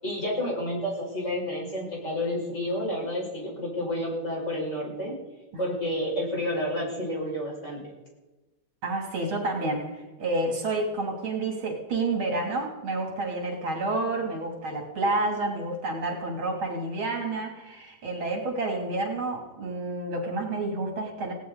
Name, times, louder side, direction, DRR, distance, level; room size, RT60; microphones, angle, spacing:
voice 1, 0.0-5.1 5.6-7.8, left 1 dB, 35° left, -3 dB, 6.1 m, -30 dB
voice 2, 8.8-21.3, right 2 dB, 75° right, 1 dB, 3.8 m, -29 dB
18.5 x 17.5 x 4.0 m, 1.1 s
omnidirectional pair, 2.3 m